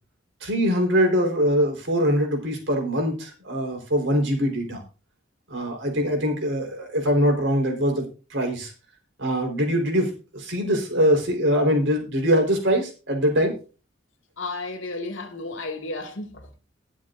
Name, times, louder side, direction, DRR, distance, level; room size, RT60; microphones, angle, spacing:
voice 1, 0.4-4.8 5.5-8.7 9.2-13.5, equal, 75° right, 4.2 m, -23 dB
voice 2, 14.4-16.5, left 2 dB, 80° left, 2.1 m, -33 dB
21.0 x 7.3 x 2.6 m
head